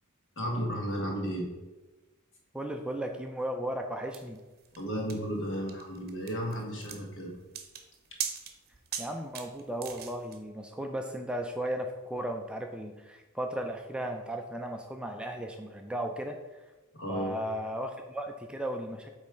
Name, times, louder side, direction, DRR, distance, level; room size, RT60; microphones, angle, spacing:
voice 1, 0.3-1.5 4.8-7.4 16.9-17.3, equal, 60° left, 0 dB, 1.7 m, -33 dB
voice 2, 2.5-4.4 9.0-16.7 17.1-19.1, right 1 dB, 5° right, 3 dB, 0.3 m, -35 dB
sound 1, 4.1-10.4, right 8 dB, 45° right, 0.8 m, -40 dB
8.3 x 3.2 x 4.9 m, 1.1 s
head